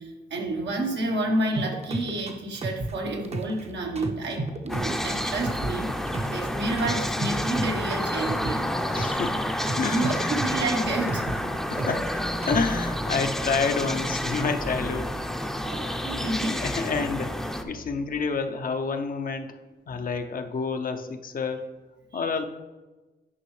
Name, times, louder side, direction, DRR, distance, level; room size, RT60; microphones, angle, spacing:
voice 1, 0.0-8.7 9.9-11.3 15.6-16.6 19.9-20.1 22.1-22.4, right 2 dB, 80° right, 1 dB, 1.2 m, -30 dB
sound 1, 1.6-3.7 4.0-6.5 6.8-9.3 9.6-12.1 12.4-12.8, right 2 dB, 35° right, 0.7 m, -33 dB
sound 2, 4.7-17.6, equal, ahead, 0.6 m, -29 dB
voice 2, 8.9-9.4 9.8-10.3 11.7-12.1 12.5-15.1 15.8-19.6 19.9-21.6 22.1-22.4, left 5 dB, 55° left, 6 dB, 0.6 m, -29 dB
9.6 x 5.4 x 3.2 m, 1.2 s
cardioid pair, 75°, 18 cm